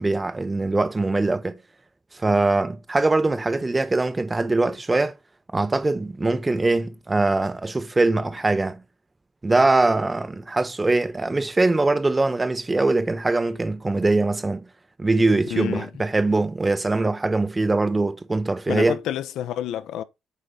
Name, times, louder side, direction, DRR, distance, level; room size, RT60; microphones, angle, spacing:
voice 1, 0.0-1.6 2.1-5.2 5.5-8.8 9.4-14.6 15.0-19.0, right 2 dB, 20° right, 1.1 m, -22 dB
voice 2, 15.5-15.9 18.7-20.0, left 11 dB, 85° left, 1.0 m, -28 dB
8.5 x 4.3 x 5.3 m
cardioid pair, 90°, 0 cm